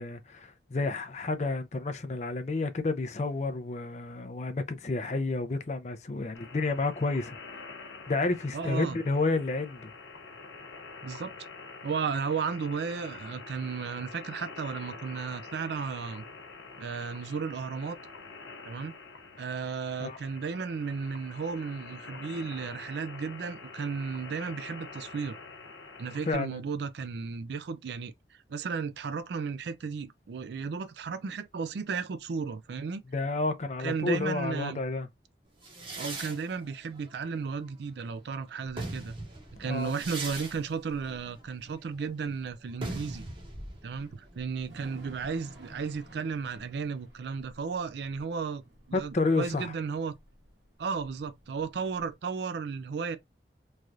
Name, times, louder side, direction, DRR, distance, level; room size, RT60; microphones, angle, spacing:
voice 1, 0.0-7.4 7.8-9.9 20.0-20.2 26.3-26.6 33.1-35.1 39.6-39.9 48.9-49.7, left 3 dB, 40° left, 0.5 m, -30 dB
sound 1, 6.3-26.3, left 4 dB, 85° left, 0.7 m, -46 dB
voice 2, 8.5-9.0 11.0-11.3 11.8-16.3 16.8-18.0 18.6-18.9 19.4-25.4 26.0-33.0 33.8-34.8 36.0-39.2 39.6-43.3 43.8-48.6 48.9-50.2 50.8-53.2, right 5 dB, 70° right, 0.4 m, -34 dB
sound 2, 35.6-38.1 38.5-46.1, right 2 dB, 30° right, 0.8 m, -42 dB
Thunder / Rain, 38.7-52.1, right 1 dB, 85° right, 1.4 m, -55 dB
3.2 x 2.4 x 2.6 m
head